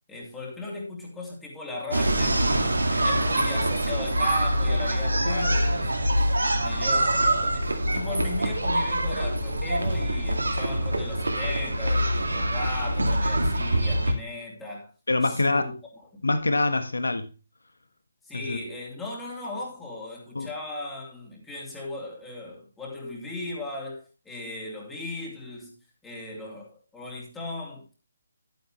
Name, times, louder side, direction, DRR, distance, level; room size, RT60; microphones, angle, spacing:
voice 1, 0.1-2.4 2.9-6.1 6.6-14.9 15.2-15.7 16.1-16.2 18.2-25.7 26.0-28.0, left 2 dB, 10° left, 2.8 m, -37 dB
sound 1, 1.9-14.1, right 1 dB, 80° right, 2.1 m, -24 dB
voice 2, 5.2-5.6 15.1-15.6 16.2-17.3 18.3-18.6 20.3-20.5, left 2 dB, 80° left, 1.3 m, -25 dB
10.5 x 9.3 x 3.1 m
figure-of-eight pair, 145°, 0 cm